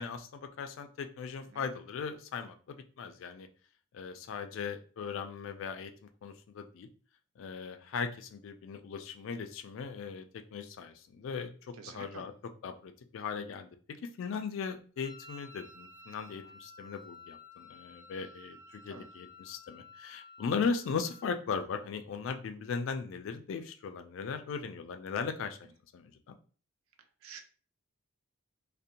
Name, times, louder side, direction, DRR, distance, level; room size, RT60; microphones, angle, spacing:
voice 1, 0.0-3.5 3.9-5.9 6.2-6.9 7.4-13.7 14.0-25.7 25.9-26.3, left 5 dB, 65° left, 8 dB, 0.3 m, -38 dB
voice 2, 11.8-12.2 18.9-19.1 27.2-27.4, right 5 dB, 80° right, 5 dB, 0.4 m, -47 dB
Wind instrument woodwind instrument, 15.0-21.6, left 3 dB, ahead, 0.9 m, -53 dB
2.5 x 2.1 x 2.7 m, 0.40 s
head